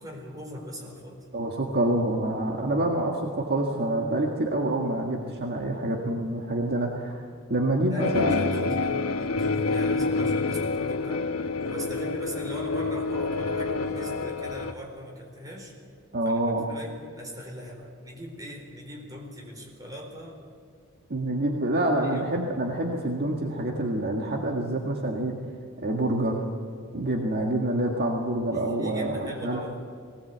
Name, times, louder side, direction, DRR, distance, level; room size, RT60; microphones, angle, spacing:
voice 1, 0.0-1.2 7.9-11.2 11.6-15.7 16.2-16.4 16.7-20.4 21.7-22.4 28.5-29.9, equal, 15° right, 0 dB, 4.1 m, -40 dB
voice 2, 1.3-7.2 7.5-8.4 16.1-16.6 21.1-25.3 25.8-26.5 26.9-29.6, right 1 dB, 50° right, 0 dB, 1.8 m, -27 dB
sound 1, 8.0-14.7, left 3 dB, 75° left, 1.1 m, -27 dB
20.0 x 18.0 x 8.1 m, 2.2 s
head